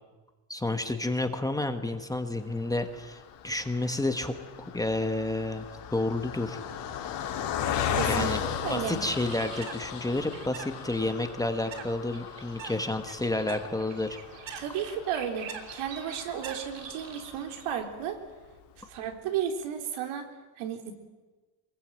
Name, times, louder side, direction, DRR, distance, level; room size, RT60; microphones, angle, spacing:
voice 1, 0.5-6.6 8.1-8.4 8.7-14.2, left 2 dB, 5° left, 7 dB, 1.3 m, -30 dB
Car passing by, 2.4-17.9 18.4-18.5 18.8-19.0, left 8 dB, 55° left, 3.5 m, -37 dB
voice 2, 7.9-8.3 8.6-9.0 14.6-18.2 18.9-20.3 20.6-20.9, right 8 dB, 80° right, 5 dB, 3.7 m, -33 dB
Bird, 8.9-17.7, right 7 dB, 60° right, 3.0 m, -45 dB
24.5 x 21.0 x 9.0 m, 1.3 s
cardioid pair, 160°, 48 cm